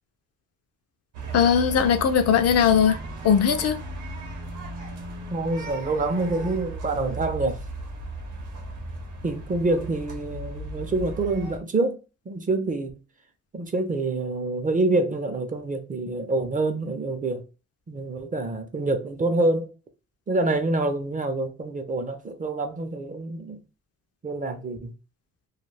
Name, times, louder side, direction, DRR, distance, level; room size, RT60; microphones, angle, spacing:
sound 1, 1.1-11.6, right 2 dB, 80° right, 0.8 m, -36 dB
voice 1, 1.3-3.0 3.2-3.8, left 7 dB, 55° left, 0.4 m, -19 dB
voice 2, 5.3-7.6 9.2-12.0 12.3-12.9 13.5-17.4 17.9-19.7 20.3-23.6 24.2-24.9, right 2 dB, 25° right, 0.5 m, -26 dB
2.3 x 2.2 x 3.2 m
cardioid pair, 90°, 30 cm